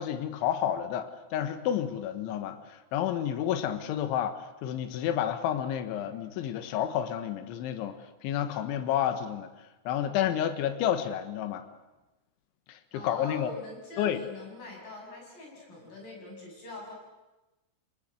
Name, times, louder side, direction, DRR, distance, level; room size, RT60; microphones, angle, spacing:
voice 1, 0.0-8.0 8.2-9.5 9.9-11.7 12.7-13.5 14.0-14.2, left 10 dB, 75° left, 10 dB, 3.6 m, -30 dB
voice 2, 12.9-16.9, left 2 dB, 45° left, 0 dB, 8.2 m, -43 dB
27.5 x 19.5 x 8.0 m, 1.0 s
omnidirectional pair, 5.8 m